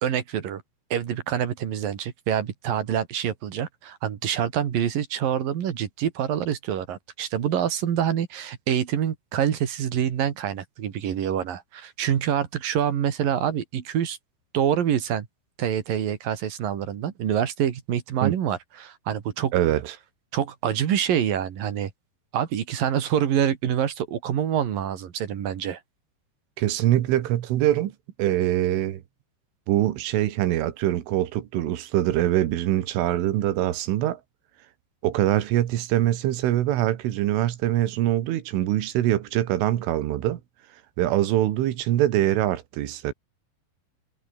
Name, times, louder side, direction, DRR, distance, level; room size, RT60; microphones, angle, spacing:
voice 1, 0.0-0.6 0.9-14.2 14.5-15.3 15.6-19.5 20.3-21.9 22.3-25.8, right 9 dB, 55° right, 3.4 m, -26 dB
voice 2, 19.5-20.0 26.6-27.9 28.2-29.0 29.7-34.2 35.0-40.4 41.0-43.1, right 13 dB, 85° right, 4.3 m, -23 dB
omnidirectional pair, 5.5 m